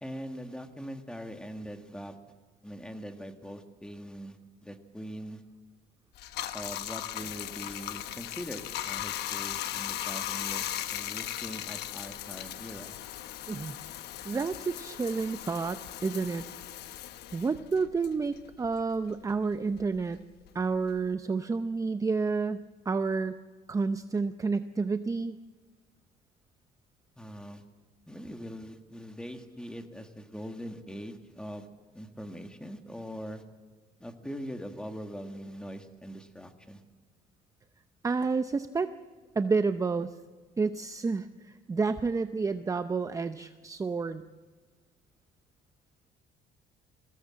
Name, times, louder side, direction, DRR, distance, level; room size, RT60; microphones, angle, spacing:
voice 1, 0.0-2.2 2.6-5.4 6.5-13.0 27.2-27.6 28.1-31.7 31.9-33.4 34.0-36.8, equal, 5° left, 6 dB, 1.8 m, -42 dB
Bathtub (filling or washing), 6.2-19.0 19.3-21.1, left 12 dB, 75° left, 1.1 m, -38 dB
voice 2, 13.5-13.8 14.2-16.4 17.3-20.2 20.5-23.4 23.7-25.4 38.0-38.9 39.3-40.2 40.6-44.2, right 4 dB, 20° right, 10 dB, 0.6 m, -30 dB
21.5 x 17.0 x 7.6 m, 1.4 s
cardioid pair, 110°, 17 cm